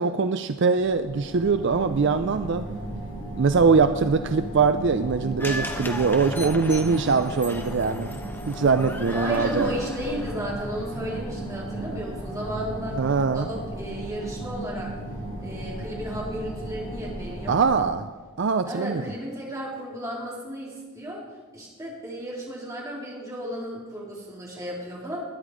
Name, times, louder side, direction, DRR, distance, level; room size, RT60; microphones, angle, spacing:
voice 1, 0.0-2.7 3.4-8.1 8.5-9.8 13.0-13.5 17.5-18.1 18.4-19.0, right 5 dB, 55° right, 10 dB, 0.5 m, -22 dB
sound 1, 0.7-17.7, right 1 dB, 40° left, 5.2 m, -35 dB
sound 2, 5.4-13.7 14.0-14.1, left 1 dB, 10° left, 1.0 m, -38 dB
voice 2, 9.1-13.0 13.3-14.9 15.4-17.6 18.6-21.2 21.5-25.2, equal, 15° right, -4 dB, 3.9 m, -34 dB
19.5 x 10.5 x 5.0 m, 1.4 s
head